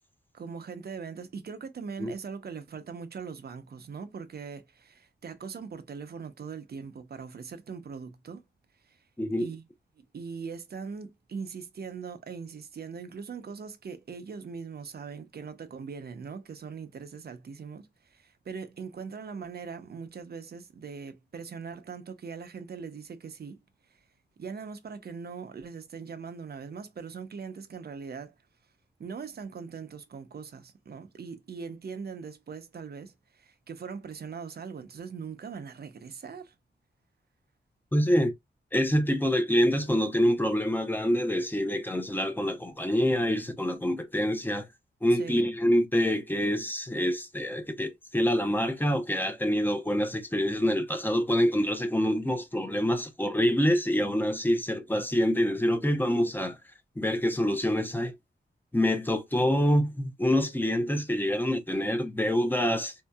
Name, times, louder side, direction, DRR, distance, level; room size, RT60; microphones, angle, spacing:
voice 1, 0.3-8.4 8.9-9.0 9.4-9.7 10.1-23.6 24.4-28.3 29.0-36.5 45.1-45.4, right 5 dB, 55° right, 0.7 m, -41 dB
voice 2, 37.9-38.3 38.7-44.6 45.0-56.6 57.0-58.1 58.7-62.9, equal, 10° left, 0.7 m, -26 dB
4.3 x 2.7 x 2.3 m
wide cardioid pair, 140°, 19 cm